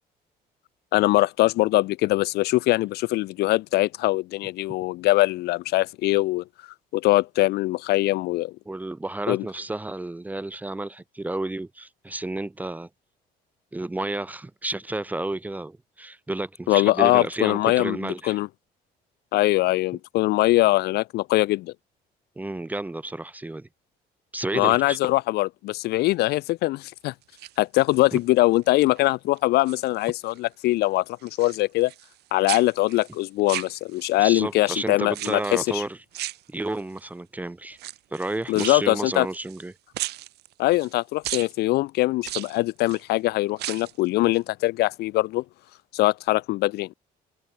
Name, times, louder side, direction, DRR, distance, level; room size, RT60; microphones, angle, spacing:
voice 1, 0.9-6.4 6.9-8.5 9.3-9.5 16.7-18.5 19.3-21.7 24.5-27.1 27.6-31.9 32.3-35.8 38.5-39.3 40.6-45.4 45.9-46.9, left 19 dB, 70° left, 0.4 m, -22 dB
voice 2, 8.7-12.9 13.7-18.4 22.4-23.7 24.3-25.0 28.1-28.2 34.2-36.0 36.5-37.8 38.1-39.7, right 2 dB, 10° right, 0.5 m, -31 dB
sound 1, 27.2-28.2 28.7-29.1 29.4-30.4 30.7-32.2 32.5-34.2 35.1-35.7 36.1-37.0 37.7-39.7 39.9-40.9 41.2-41.5 42.2-43.0 43.5-44.0 44.3-44.4, right 16 dB, 75° right, 1.8 m, -36 dB
cardioid pair, 110°, 17 cm